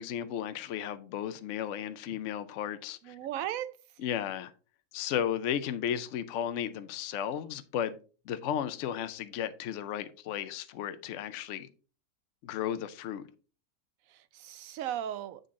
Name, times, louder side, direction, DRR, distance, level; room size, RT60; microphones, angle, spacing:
voice 1, 0.0-3.2 4.0-4.5 4.9-8.0 8.3-11.7 12.4-13.2, left 9 dB, 70° left, 0.9 m, -34 dB
voice 2, 3.0-3.7 14.1-15.4, right 11 dB, 80° right, 1.0 m, -36 dB
7.8 x 3.9 x 3.6 m
omnidirectional pair, 1.4 m